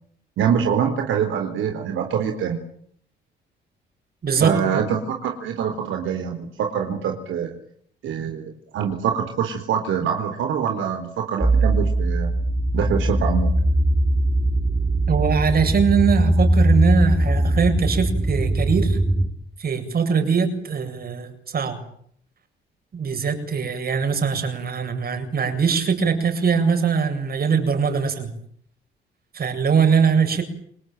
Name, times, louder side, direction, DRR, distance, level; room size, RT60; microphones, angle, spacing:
voice 1, 0.4-2.6 4.4-7.6 8.0-12.3 12.7-13.5, right 8 dB, 80° right, 4 dB, 4.3 m, -24 dB
voice 2, 4.2-4.8 15.1-19.0 19.6-21.8 22.9-28.3 29.3-30.4, right 6 dB, 50° right, 7 dB, 7.8 m, -21 dB
sound 1, 11.4-19.3, right 1 dB, 5° right, 4.8 m, -20 dB
29.5 x 21.0 x 9.3 m, 0.66 s
cardioid pair, 90°, 20 cm